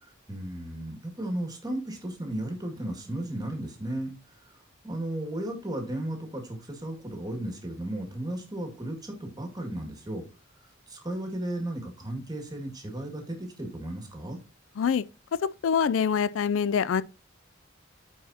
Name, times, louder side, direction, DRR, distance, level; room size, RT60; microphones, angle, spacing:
voice 1, 0.0-4.1 4.8-10.2 10.9-14.4, right 1 dB, 20° right, 1.9 m, -35 dB
voice 2, 15.6-17.0, left 7 dB, 80° left, 0.4 m, -24 dB
13.5 x 4.7 x 2.8 m
head